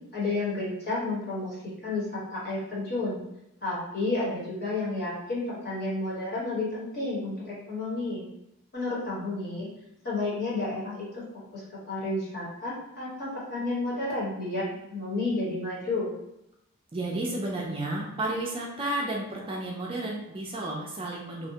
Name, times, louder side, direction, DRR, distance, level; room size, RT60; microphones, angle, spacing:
voice 1, 0.1-1.5 1.8-3.2 3.6-8.2 8.7-9.7 10.0-11.2 11.5-14.6 14.9-16.1, left 2 dB, 45° left, -7 dB, 1.1 m, -31 dB
voice 2, 16.9-21.5, right 2 dB, 25° right, -2 dB, 0.3 m, -32 dB
2.7 x 2.1 x 2.7 m, 0.82 s
head